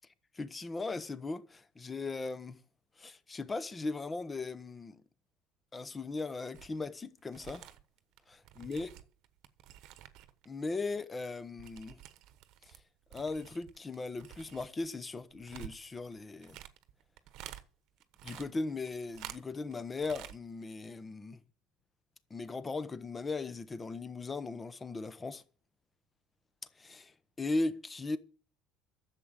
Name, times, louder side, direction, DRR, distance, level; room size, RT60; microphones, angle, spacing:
voice 1, 0.3-2.6 3.0-5.0 5.7-7.7 8.6-8.9 10.5-12.0 12.7-12.8 13.1-16.6 18.2-21.4 22.3-25.4 26.8-28.2, left 3 dB, 20° left, 1.0 m, -38 dB
sound 1, 6.5-6.9 7.2-10.5 10.7-12.8 13.1-17.6 18.0-19.7 20.0-20.4 20.7-20.8, right 13 dB, 65° right, 1.1 m, -50 dB
11.0 x 7.5 x 8.1 m
supercardioid pair, 110°, 0 cm